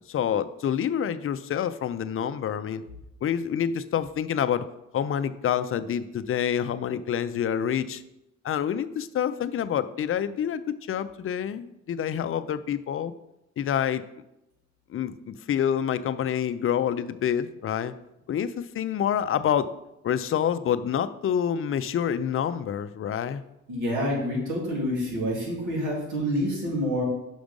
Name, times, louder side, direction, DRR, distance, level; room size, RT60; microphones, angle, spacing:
voice 1, 0.1-2.8 3.2-4.6 4.9-8.0 8.4-13.1 13.6-14.0 14.9-17.9 18.3-19.7 20.0-23.4, left 9 dB, 45° left, 12 dB, 0.5 m, -27 dB
voice 2, 23.7-27.0, equal, 80° right, -3 dB, 2.9 m, -27 dB
6.1 x 5.1 x 5.2 m, 0.88 s
cardioid pair, 90°, 30 cm